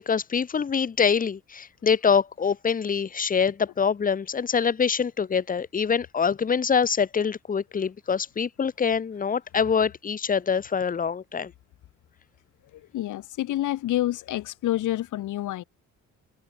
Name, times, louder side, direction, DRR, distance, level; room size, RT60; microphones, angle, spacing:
voice 1, 0.0-11.5, left 6 dB, 30° left, 0.9 m, -25 dB
voice 2, 12.9-15.6, left 14 dB, 80° left, 2.4 m, -28 dB
cardioid pair, 90°, 30 cm